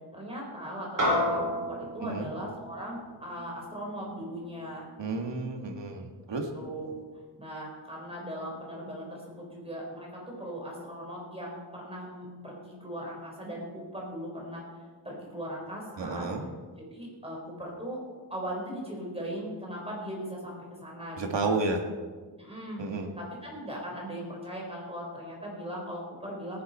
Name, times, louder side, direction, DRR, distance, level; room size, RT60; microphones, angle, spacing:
voice 1, 0.1-4.9 6.5-6.9 7.4-14.6 15.0-16.3 16.9-18.0 18.3-21.6 22.4-22.8 23.2-26.6, equal, 15° right, -3 dB, 4.5 m, -39 dB
sound 1, 1.0-5.6, left 1 dB, 45° right, 4.4 m, -33 dB
voice 2, 5.0-6.5 16.0-16.4 21.2-21.8 22.8-23.1, right 3 dB, 75° right, 3 dB, 1.9 m, -31 dB
18.5 x 10.5 x 4.4 m, 1.4 s
wide cardioid pair, 135°, 44 cm